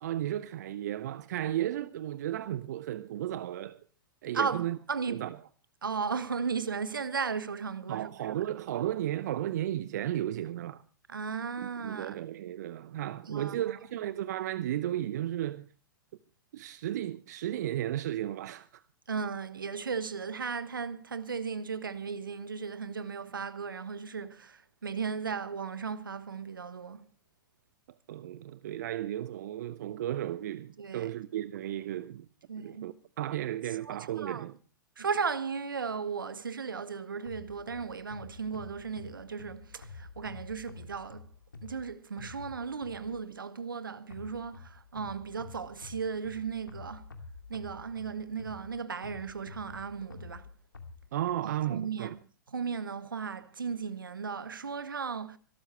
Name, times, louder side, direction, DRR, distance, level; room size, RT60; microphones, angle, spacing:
voice 1, 0.0-3.8 4.2-4.8 5.1-5.4 7.9-10.8 11.6-15.6 16.5-18.8 28.1-32.3 32.6-34.6 51.1-52.1, right 12 dB, 55° right, 0.7 m, -34 dB
voice 2, 4.3-5.2 5.8-8.1 11.1-12.2 13.3-13.5 19.1-27.0 30.8-31.1 32.5-32.9 33.9-34.0 34.2-34.4 35.0-41.3 41.6-47.1 47.5-50.4 51.4-52.1 52.5-55.4, right 5 dB, 75° right, 1.2 m, -36 dB
sound 1, 37.2-43.3 44.1-51.0, left 4 dB, 80° left, 2.3 m, -49 dB
25.0 x 13.0 x 3.3 m
figure-of-eight pair, 105°, 11 cm